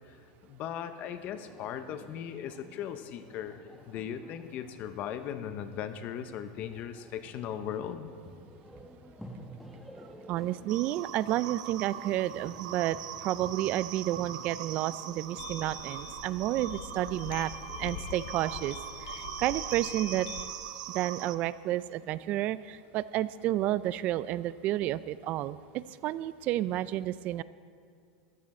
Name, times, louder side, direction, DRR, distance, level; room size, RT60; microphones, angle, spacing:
voice 1, 0.4-8.1, left 9 dB, 40° left, 10 dB, 0.8 m, -38 dB
sound 1, 1.0-20.5, equal, ahead, 1.1 m, -53 dB
voice 2, 10.3-17.5 17.8-20.3 20.9-27.4, right 14 dB, 40° right, 17 dB, 0.4 m, -31 dB
sound 2, 10.7-21.4, right 10 dB, 75° right, 0.7 m, -41 dB
sound 3, 15.4-20.5, left 10 dB, 80° left, 0.6 m, -44 dB
14.0 x 11.0 x 4.3 m, 2.4 s
supercardioid pair, 145°, 4 cm